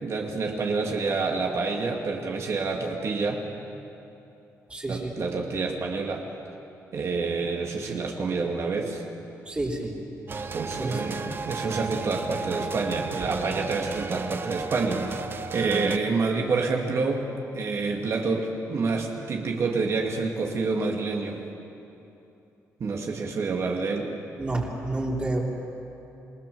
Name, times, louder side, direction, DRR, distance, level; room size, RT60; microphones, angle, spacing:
voice 1, 0.0-3.4 4.9-6.3 6.9-9.0 10.5-15.3 15.5-21.4 22.8-24.1, right 4 dB, 55° right, 1 dB, 2.6 m, -28 dB
voice 2, 4.7-5.2 9.5-9.9 10.8-11.0 24.4-25.4, right 2 dB, 20° right, -3 dB, 3.7 m, -29 dB
sound 1, 10.3-16.0, right 4 dB, 35° right, 0.9 m, -34 dB
27.5 x 20.0 x 7.1 m, 2.8 s
cardioid pair, 115°, 6 cm